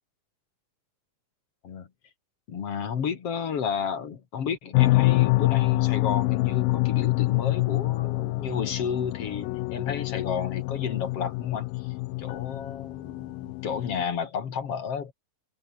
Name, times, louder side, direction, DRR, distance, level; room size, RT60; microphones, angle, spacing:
voice 1, 2.5-15.1, left 7 dB, 50° left, 2.7 m, -32 dB
sound 1, 4.7-14.0, left 22 dB, 85° left, 2.3 m, -26 dB
omnidirectional pair, 4.0 m